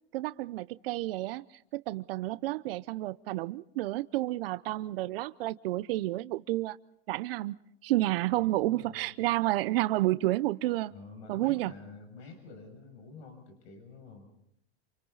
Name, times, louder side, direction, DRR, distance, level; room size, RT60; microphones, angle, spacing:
voice 1, 0.1-1.4 1.7-6.8 7.1-7.5 7.8-10.9 11.3-11.7, right 17 dB, 65° right, 15 dB, 0.9 m, -30 dB
voice 2, 8.3-9.1 10.9-14.3, left 4 dB, 80° left, 6 dB, 7.2 m, -49 dB
28.0 x 28.0 x 4.1 m, 0.72 s
supercardioid pair, 150°, 32 cm